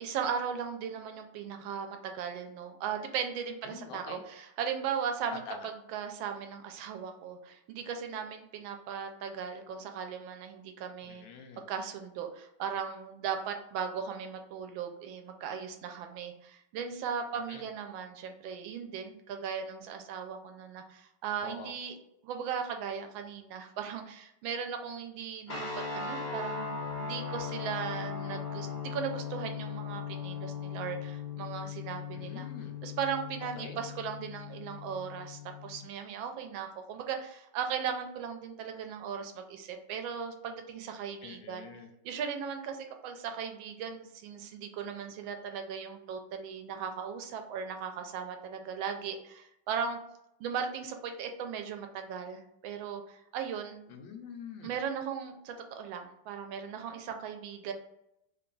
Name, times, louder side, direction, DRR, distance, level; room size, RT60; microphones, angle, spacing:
voice 1, 0.0-11.3 11.7-21.9 22.2-32.5 32.8-41.7 42.0-50.0 50.4-53.9 54.6-57.7, right 7 dB, 90° right, 5 dB, 1.4 m, -37 dB
voice 2, 3.6-4.2 5.3-5.6 11.0-11.6 17.5-17.6 21.4-21.7 32.1-32.7 33.5-33.8 41.2-41.9 53.9-54.7, left 6 dB, 75° left, 4 dB, 1.3 m, -45 dB
sound 1, 25.5-35.8, left 6 dB, 30° left, 0.9 m, -39 dB
3.3 x 2.3 x 3.7 m, 0.80 s
omnidirectional pair, 2.1 m